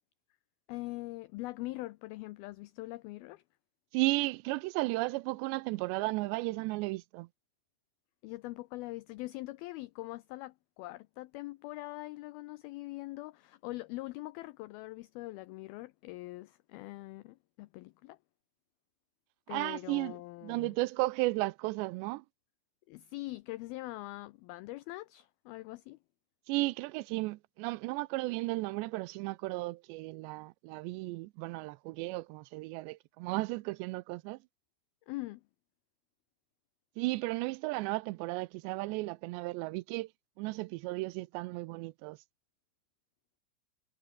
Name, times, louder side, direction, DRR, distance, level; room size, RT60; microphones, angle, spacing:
voice 1, 0.7-3.4 8.2-18.2 19.5-20.8 22.9-26.0 35.1-35.4, left 19 dB, 85° left, 2.1 m, -43 dB
voice 2, 3.9-7.3 19.5-22.2 26.5-34.4 37.0-40.1 40.4-42.2, right 21 dB, 85° right, 2.8 m, -34 dB
omnidirectional pair, 5.0 m